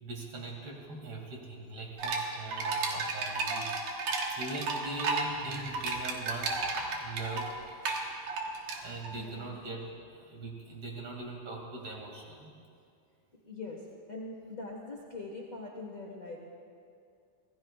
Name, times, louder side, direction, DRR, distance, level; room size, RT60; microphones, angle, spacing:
voice 1, 0.0-3.7 4.4-7.5 8.8-9.9 10.1-12.5, right 2 dB, 40° right, 0 dB, 3.0 m, -41 dB
sound 1, 2.0-9.1, right 3 dB, 65° right, 2.7 m, -33 dB
voice 2, 9.1-9.6 13.4-13.8 14.1-16.4, left 3 dB, 75° left, -2 dB, 0.7 m, -42 dB
26.0 x 18.0 x 2.4 m, 2.4 s
omnidirectional pair, 4.2 m